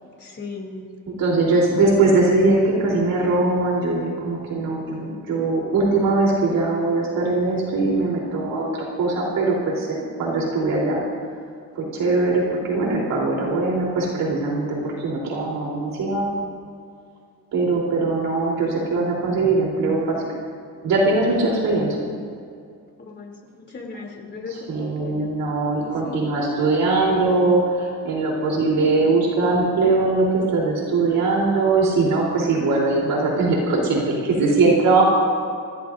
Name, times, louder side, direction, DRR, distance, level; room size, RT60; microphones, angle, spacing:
voice 1, 0.0-0.9 21.4-21.9 23.0-25.3 25.8-26.3, left 4 dB, 30° left, -1 dB, 3.2 m, -37 dB
voice 2, 1.2-11.0 11.8-16.4 17.5-20.2 20.8-22.0 24.7-35.0, right 3 dB, 70° right, -3 dB, 3.8 m, -21 dB
27.0 x 15.0 x 2.7 m, 2.3 s
cardioid pair, 125°, 35 cm